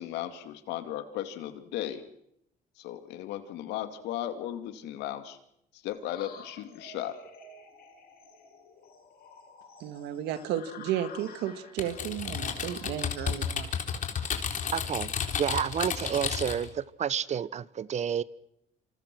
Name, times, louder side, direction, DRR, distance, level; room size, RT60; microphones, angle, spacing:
voice 1, 0.0-2.0 2.8-5.4 5.7-7.2, left 12 dB, 90° left, 2.5 m, -36 dB
sound 1, 5.9-14.3, left 4 dB, 65° left, 7.7 m, -51 dB
voice 2, 9.8-13.7, right 11 dB, 90° right, 2.0 m, -33 dB
Typing, 11.8-16.7, left 7 dB, 50° left, 3.9 m, -32 dB
voice 3, 14.7-15.1 15.4-18.2, right 8 dB, 45° right, 1.1 m, -30 dB
27.5 x 27.0 x 6.2 m
cardioid pair, 110°, 17 cm